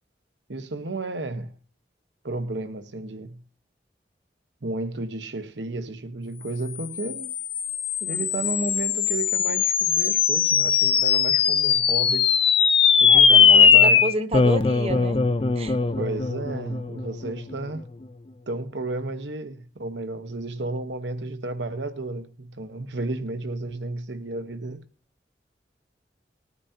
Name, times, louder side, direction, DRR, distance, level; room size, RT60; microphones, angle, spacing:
voice 1, 0.5-1.6 2.2-3.4 4.6-7.3 8.0-12.3 13.0-14.0 16.0-17.8 18.5-24.8, right 2 dB, 85° right, 1.1 m, -32 dB
sound 1, 6.8-17.5, left 6 dB, 30° left, 0.5 m, -20 dB
voice 2, 13.1-15.2 15.6-15.8, right 1 dB, 35° right, 0.9 m, -30 dB
20.0 x 9.5 x 2.8 m
head